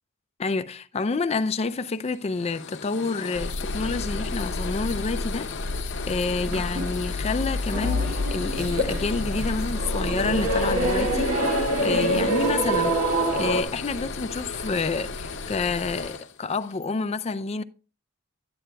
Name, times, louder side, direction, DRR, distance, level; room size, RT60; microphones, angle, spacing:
voice 1, 0.4-5.5 6.1-17.6, left 4 dB, 30° left, 0.4 m, -29 dB
sound 1, 1.4-16.9, left 6 dB, 55° left, 0.8 m, -36 dB
sound 2, 3.4-16.1, left 2 dB, 50° right, 0.7 m, -32 dB
sound 3, 7.7-13.6, right 1 dB, 90° right, 1.9 m, -26 dB
11.0 x 8.9 x 2.3 m
head